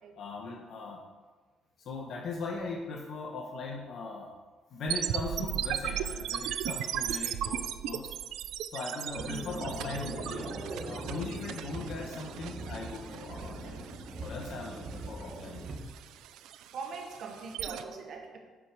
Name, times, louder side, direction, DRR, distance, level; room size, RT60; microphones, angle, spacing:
voice 1, 0.2-1.0 1.8-4.4 4.7-8.1 8.7-10.5 10.8-13.8 14.2-15.7, left 3 dB, 55° left, 1.1 m, -39 dB
sound 1, 4.9-17.8, right 11 dB, 85° right, 0.5 m, -37 dB
sound 2, 9.2-15.8, right 2 dB, 35° right, 1.5 m, -41 dB
voice 2, 9.3-9.8 16.7-18.4, right 4 dB, 55° right, 1.5 m, -41 dB
8.3 x 7.7 x 4.8 m
cardioid pair, 150°, 0 cm